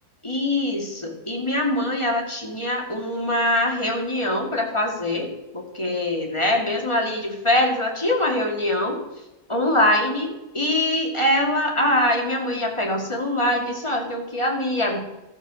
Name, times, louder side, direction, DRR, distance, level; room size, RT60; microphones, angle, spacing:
voice 1, 0.2-9.0 9.5-15.0, left 1 dB, 20° left, 0 dB, 2.3 m, -23 dB
13.5 x 7.5 x 6.3 m, 1.0 s
omnidirectional pair, 1.7 m